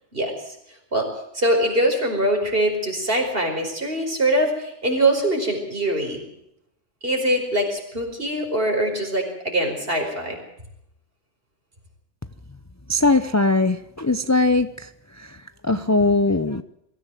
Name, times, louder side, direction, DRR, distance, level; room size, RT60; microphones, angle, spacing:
voice 1, 0.1-0.6 0.9-6.2 7.0-10.4, right 1 dB, 50° right, 2 dB, 5.2 m, -23 dB
voice 2, 12.9-14.7 15.2-15.3 15.6-16.6, left 2 dB, 20° left, 11 dB, 0.6 m, -20 dB
23.5 x 15.0 x 7.6 m, 0.79 s
omnidirectional pair, 1.3 m